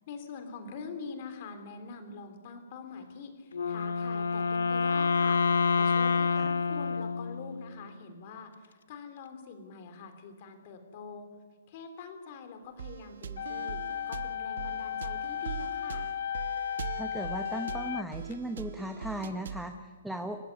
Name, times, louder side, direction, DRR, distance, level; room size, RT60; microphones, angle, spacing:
voice 1, 0.1-5.4 5.8-11.3 11.7-13.8 14.1-16.1, left 5 dB, 30° left, 7 dB, 3.4 m, -44 dB
Wind instrument woodwind instrument, 3.5-7.8, left 5 dB, 90° left, 0.9 m, -27 dB
sound 1, 12.8-19.7, right 8 dB, 55° right, 1.1 m, -42 dB
sound 2, 13.4-18.3, left 9 dB, 55° left, 0.6 m, -35 dB
voice 2, 17.0-20.4, right 1 dB, ahead, 6 dB, 0.9 m, -37 dB
29.0 x 15.5 x 9.7 m, 1.5 s
hypercardioid pair, 175°, 0 cm